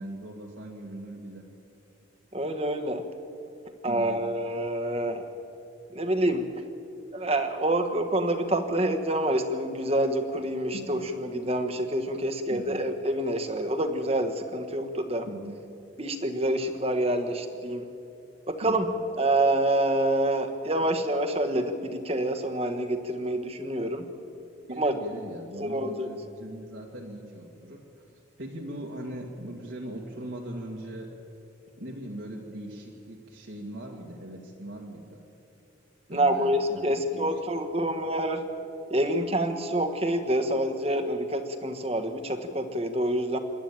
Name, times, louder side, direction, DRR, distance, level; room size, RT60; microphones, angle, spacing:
voice 1, 0.0-1.4 3.9-4.2 10.7-11.0 12.5-12.9 15.2-15.6 18.6-19.0 24.7-31.1 31.8-35.2 36.1-37.3 37.8-37.9, right 1 dB, 70° right, -2 dB, 2.2 m, -40 dB
voice 2, 2.3-3.0 3.8-5.2 5.9-6.4 7.1-15.3 16.0-17.9 18.5-18.9 19.2-24.1 24.8-24.9 25.6-26.1 36.1-38.4 38.9-43.4, right 1 dB, 30° right, 6 dB, 1.4 m, -27 dB
26.5 x 12.0 x 8.9 m, 2.7 s
head